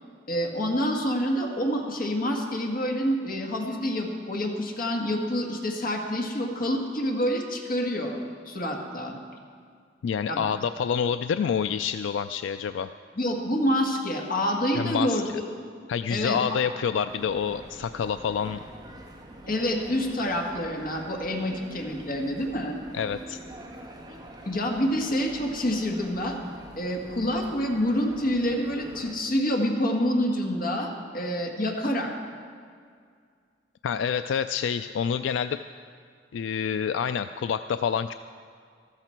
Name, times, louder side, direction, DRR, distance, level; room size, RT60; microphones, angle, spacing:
voice 1, 0.3-8.2 8.5-9.2 10.3-10.4 13.2-15.3 16.1-16.4 19.5-22.8 24.5-26.4 26.8-32.1, equal, 50° left, 1 dB, 1.7 m, -27 dB
voice 2, 10.0-12.9 14.8-15.2 15.9-18.6 22.9-23.4 33.8-35.6 36.3-38.1, left 7 dB, 85° left, 11 dB, 0.3 m, -27 dB
sound 1, 17.1-29.1, right 1 dB, 20° right, 1.5 m, -45 dB
14.0 x 13.5 x 4.5 m, 2.1 s
head